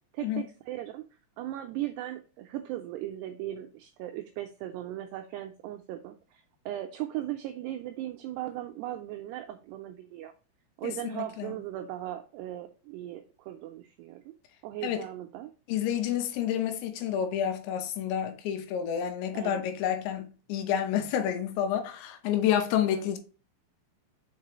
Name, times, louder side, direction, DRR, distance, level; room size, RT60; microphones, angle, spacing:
voice 1, 0.1-1.0 1.4-10.3 10.8-14.3 14.6-15.5 19.3-19.6 22.9-23.1, right 13 dB, 90° right, 2.4 m, -38 dB
voice 2, 10.8-11.6 14.8-15.0 15.7-23.2, left 9 dB, 80° left, 3.0 m, -29 dB
6.6 x 4.7 x 3.0 m
omnidirectional pair, 5.4 m